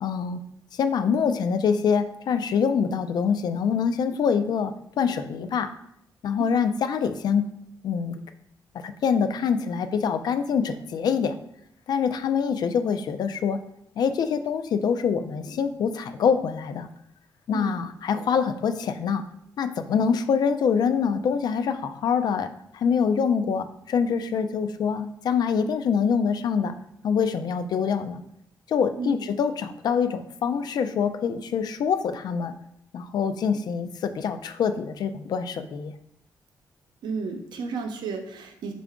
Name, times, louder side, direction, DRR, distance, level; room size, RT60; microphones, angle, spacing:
voice 1, 0.0-0.4 0.7-5.7 6.2-7.5 7.8-8.2 8.8-11.4 11.9-13.6 14.0-16.9 17.5-19.2 19.6-22.5 22.7-26.8 27.0-28.2 28.7-32.5 32.9-35.9, left 6 dB, 65° left, 10 dB, 0.4 m, -25 dB
voice 2, 37.0-38.7, right 4 dB, 85° right, 4 dB, 0.6 m, -32 dB
4.5 x 2.5 x 3.5 m, 0.76 s
cardioid pair, 105°, 7 cm